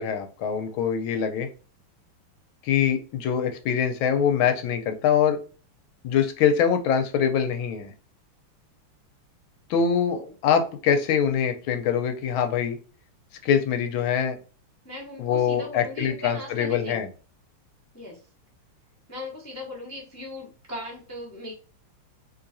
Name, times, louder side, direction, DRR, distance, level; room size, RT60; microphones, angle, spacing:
voice 1, 0.0-1.5 2.6-5.4 6.0-7.9 9.7-12.8 13.4-14.4 15.2-17.1, left 7 dB, 75° left, 6 dB, 1.3 m, -24 dB
voice 2, 14.8-17.0 17.9-18.2 19.1-21.5, left 1 dB, 25° left, -2 dB, 0.3 m, -38 dB
3.8 x 3.1 x 2.6 m, 0.36 s
omnidirectional pair, 2.4 m